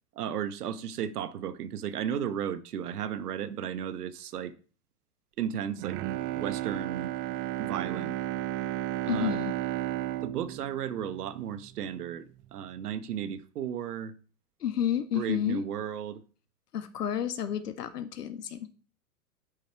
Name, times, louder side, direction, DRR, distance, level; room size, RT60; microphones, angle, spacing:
voice 1, 0.1-4.5 5.4-6.0 6.4-7.1 7.6-8.1 9.0-9.4 10.2-14.1 15.1-16.2, right 9 dB, 75° right, 1.3 m, -34 dB
Bowed string instrument, 5.7-12.0 12.4-12.5, right 14 dB, 25° right, 0.4 m, -34 dB
voice 2, 9.1-9.5 14.6-15.6 16.7-18.7, left 9 dB, 80° left, 1.9 m, -30 dB
9.3 x 8.9 x 4.7 m
hypercardioid pair, 115°, 47 cm